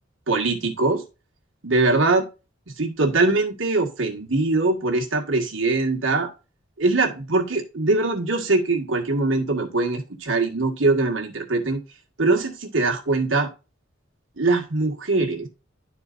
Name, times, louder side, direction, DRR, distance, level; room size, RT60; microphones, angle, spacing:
voice 1, 0.3-1.0 1.6-2.3 2.8-6.3 6.8-11.8 12.2-13.5 14.4-15.5, right 3 dB, 70° right, 2 dB, 1.6 m, -22 dB
11.5 x 4.4 x 2.5 m, 0.30 s
head